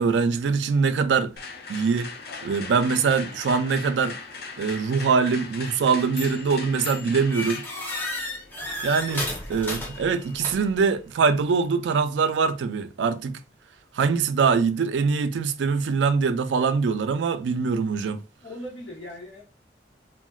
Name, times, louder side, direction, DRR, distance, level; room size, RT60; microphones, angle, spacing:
voice 1, 0.0-1.3 1.7-2.1 2.4-4.2 4.6-7.6 8.8-9.2 9.5-13.4 13.9-18.2, right 5 dB, 80° right, 0.3 m, -23 dB
sound 1, 1.4-9.3, left 4 dB, 60° left, 0.5 m, -40 dB
sound 2, 6.2-6.5 6.8-10.9, left 1 dB, 10° left, 0.7 m, -33 dB
voice 2, 18.4-19.4, left 1 dB, 90° left, 1.0 m, -39 dB
3.8 x 2.1 x 2.2 m
head